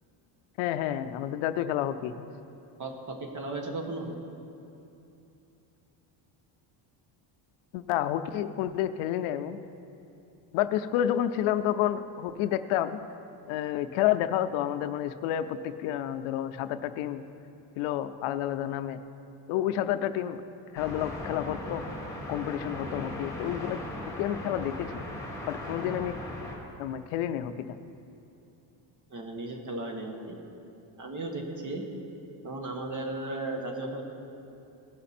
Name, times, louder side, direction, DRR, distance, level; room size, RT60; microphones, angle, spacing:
voice 1, 0.6-2.2 7.7-9.6 10.5-13.0 13.5-17.2 17.8-19.0 19.5-20.4 20.7-21.8 22.3-23.8 24.2-25.0 25.5-26.1 26.8-27.8, left 11 dB, 90° left, 10 dB, 0.6 m, -30 dB
voice 2, 2.8-4.1 29.1-30.4 31.0-31.8 32.4-34.0, right 2 dB, 40° right, 2 dB, 1.6 m, -35 dB
sound 1, 20.7-26.6, left 1 dB, 5° left, 1.9 m, -38 dB
17.0 x 5.8 x 4.3 m, 2.8 s
cardioid pair, 115°, 48 cm